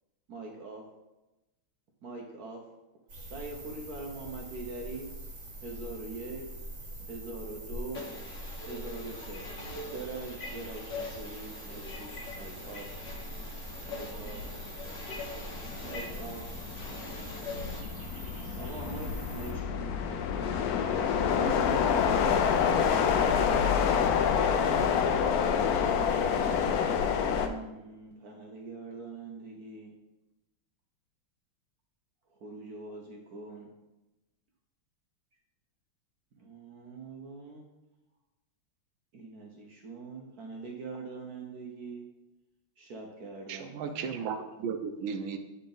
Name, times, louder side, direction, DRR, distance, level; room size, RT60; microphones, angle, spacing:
voice 1, 0.3-0.8 2.0-2.7 3.3-5.1 5.6-6.4 7.1-8.0 8.7-9.4 9.9-12.9 13.9-14.4 15.8-16.4 18.6-19.9 20.9-22.3 22.8-23.9 24.4-25.3 27.3-29.9 32.3-33.7 36.4-37.6 39.1-42.1 42.8-43.7, right 3 dB, 60° right, 1.1 m, -42 dB
sound 1, 3.1-19.5, right 1 dB, 35° right, 1.8 m, -44 dB
voice 2, 7.9-17.8, left 2 dB, 60° left, 2.1 m, -43 dB
sound 2, 12.5-12.7 13.1-27.5, left 7 dB, 85° left, 0.8 m, -28 dB
voice 3, 43.5-45.4, right 6 dB, 75° right, 1.4 m, -35 dB
9.7 x 4.0 x 3.8 m
omnidirectional pair, 2.2 m